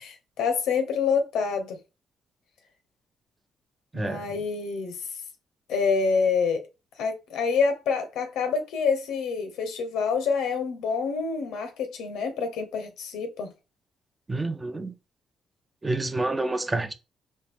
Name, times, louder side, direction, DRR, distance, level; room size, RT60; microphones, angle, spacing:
voice 1, 0.0-1.8 3.9-5.0 5.7-6.6 7.0-13.5, left 5 dB, 85° left, 0.8 m, -27 dB
voice 2, 3.9-4.4 14.3-14.9 15.8-16.9, right 2 dB, 20° right, 0.5 m, -28 dB
4.2 x 2.5 x 3.4 m
cardioid pair, 90°, 0 cm